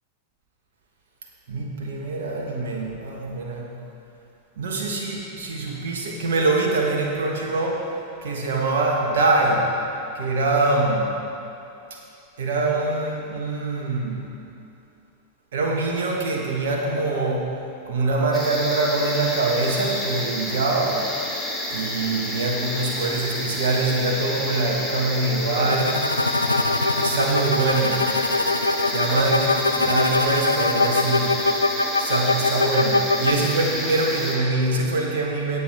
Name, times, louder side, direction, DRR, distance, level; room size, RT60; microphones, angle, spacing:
voice 1, 1.5-3.7 4.6-7.9 8.2-9.7 10.1-11.2 11.9-12.0 12.4-14.3 15.5-17.4 17.9-21.1 21.7-26.1 27.0-28.0 28.8-31.3 32.0-35.6, right 2 dB, 60° right, -1 dB, 1.5 m, -24 dB
sound 1, 18.3-34.4, equal, ahead, 2.5 m, -30 dB
sound 2, 25.7-33.3, left 3 dB, 85° left, 0.5 m, -23 dB
17.0 x 8.3 x 3.6 m, 2.7 s
figure-of-eight pair, 90°, 0 cm